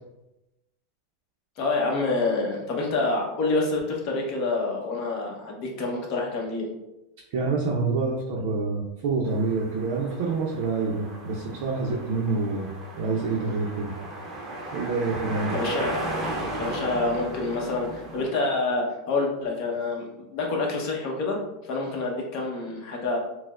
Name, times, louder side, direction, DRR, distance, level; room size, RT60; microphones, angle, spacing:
voice 1, 1.6-6.7 15.5-16.0 16.5-21.4 21.6-23.2, left 3 dB, 45° left, -1 dB, 0.8 m, -27 dB
voice 2, 7.3-12.7 12.9-13.9 14.7-15.6, right 4 dB, 60° right, -2 dB, 0.5 m, -27 dB
sound 1, 9.3-18.2, right 1 dB, 20° right, 0.6 m, -35 dB
4.2 x 2.0 x 2.4 m, 0.97 s
supercardioid pair, 155°, 0 cm